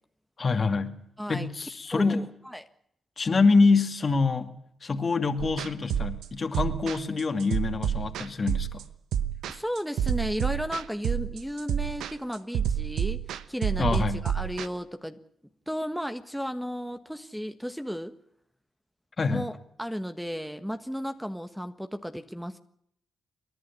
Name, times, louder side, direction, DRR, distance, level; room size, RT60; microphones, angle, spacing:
voice 1, 0.4-1.0 1.3-2.3 3.2-4.5 4.8-8.8 13.8-14.2 19.2-19.5, left 4 dB, 45° left, 8 dB, 2.4 m, -25 dB
voice 2, 1.9-2.6 9.5-13.2 13.5-15.2 15.7-18.1 19.3-22.6, equal, ahead, 9 dB, 1.5 m, -34 dB
sound 1, 5.4-14.7, right 9 dB, 80° right, 0.9 m, -29 dB
29.5 x 11.0 x 8.6 m, 0.71 s
supercardioid pair, 50°, 0 cm